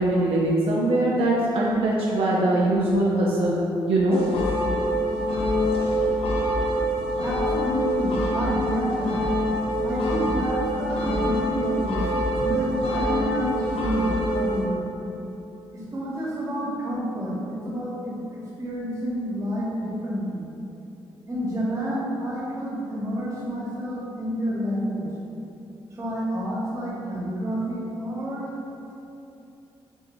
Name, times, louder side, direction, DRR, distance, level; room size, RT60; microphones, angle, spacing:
voice 1, 0.0-4.2, right 1 dB, 70° right, -5 dB, 0.5 m, -22 dB
sound 1, 4.1-14.7, equal, 70° left, 0.6 m, -25 dB
voice 2, 7.2-9.2 9.8-12.1 12.4-14.8 15.7-20.4 21.3-25.1 25.9-28.5, equal, 35° right, -6 dB, 1.2 m, -29 dB
7.1 x 2.7 x 2.6 m, 2.9 s
cardioid pair, 110°, 10 cm